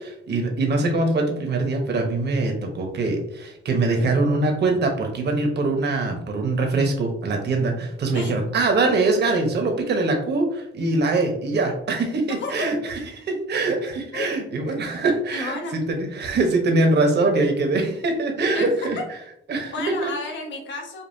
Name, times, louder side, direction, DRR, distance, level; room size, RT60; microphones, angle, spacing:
voice 1, 0.0-15.6 15.9-19.0 19.5-19.7 20.0-20.1, right 2 dB, 55° right, 3 dB, 1.0 m, -23 dB
voice 2, 12.4-13.1 14.1-14.3 14.7-14.8 15.3-15.8 18.5-19.1 19.7-21.0, left 3 dB, 65° left, 1 dB, 0.9 m, -32 dB
5.3 x 2.4 x 2.7 m, 0.77 s
cardioid pair, 100°, 21 cm